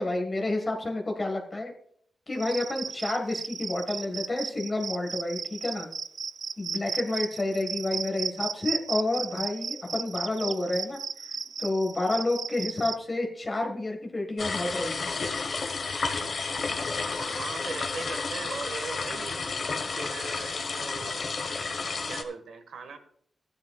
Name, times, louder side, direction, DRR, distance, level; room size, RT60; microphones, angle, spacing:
voice 1, 0.0-1.7 2.3-5.9 6.6-11.0 11.6-15.1, left 2 dB, 25° left, 2 dB, 1.6 m, -29 dB
Cricket, 2.3-13.0, right 6 dB, 55° right, 0.4 m, -35 dB
sound 1, 14.4-22.2, left 4 dB, 45° left, 1.2 m, -31 dB
voice 2, 17.0-19.4 20.0-21.4 21.8-23.0, right 5 dB, 85° right, 7 dB, 1.6 m, -40 dB
15.5 x 10.5 x 2.4 m, 0.64 s
wide cardioid pair, 145°, 0 cm